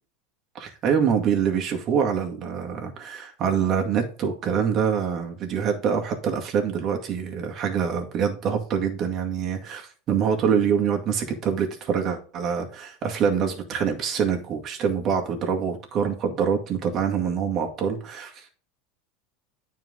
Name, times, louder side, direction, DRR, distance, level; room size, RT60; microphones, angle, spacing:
voice 1, 0.5-18.5, right 7 dB, 45° right, 3 dB, 2.1 m, -25 dB
9.3 x 4.7 x 3.9 m, 0.42 s
supercardioid pair, 105°, 0 cm